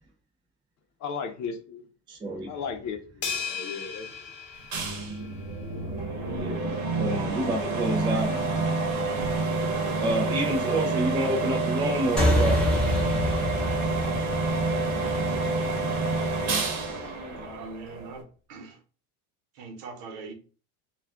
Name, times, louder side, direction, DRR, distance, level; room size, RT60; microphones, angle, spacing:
voice 1, 1.0-1.8 2.5-4.3, left 6 dB, 45° left, 0.6 m, -35 dB
voice 2, 2.1-2.5 6.4-8.3 10.0-12.6, right 1 dB, 15° right, 0.3 m, -28 dB
sound 1, 3.2-5.7, left 6 dB, 75° left, 0.8 m, -36 dB
sound 2, 4.7-18.2, right 3 dB, 45° right, 0.9 m, -28 dB
sound 3, 12.2-17.0, left 1 dB, ahead, 0.9 m, -27 dB
voice 3, 17.2-18.8 19.5-20.3, right 4 dB, 75° right, 1.0 m, -42 dB
2.3 x 2.3 x 3.5 m
supercardioid pair, 120°, 39 cm